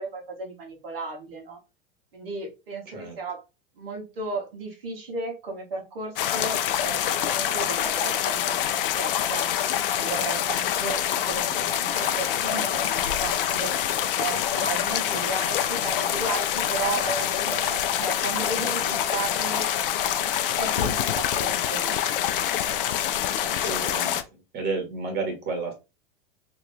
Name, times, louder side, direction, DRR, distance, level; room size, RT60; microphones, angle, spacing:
voice 1, 0.0-1.6 2.1-3.4 3.8-9.5 10.0-13.7 14.1-19.7 20.4-22.0, right 3 dB, 75° right, -2 dB, 1.3 m, -34 dB
sound 1, 6.2-24.2, left 10 dB, 65° left, 0.5 m, -26 dB
voice 2, 14.3-14.7 23.4-24.2 24.5-25.7, right 3 dB, 35° right, 3 dB, 1.5 m, -32 dB
2.8 x 2.6 x 3.3 m, 0.26 s
figure-of-eight pair, 85°, 29 cm